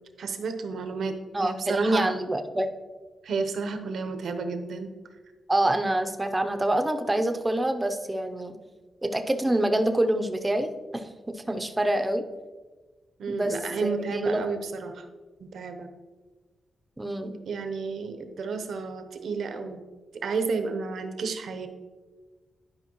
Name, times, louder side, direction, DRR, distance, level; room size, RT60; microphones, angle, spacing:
voice 1, 0.2-2.2 3.2-4.9 13.2-15.1 15.4-15.9 17.2-19.8 20.2-21.7, right 4 dB, 75° right, 7 dB, 0.7 m, -32 dB
voice 2, 1.3-2.7 5.5-8.6 9.0-12.2 13.3-13.6 13.8-14.4 17.0-17.4, right 1 dB, 15° right, 7 dB, 0.6 m, -26 dB
11.0 x 5.2 x 3.0 m, 1.3 s
wide cardioid pair, 135°, 0 cm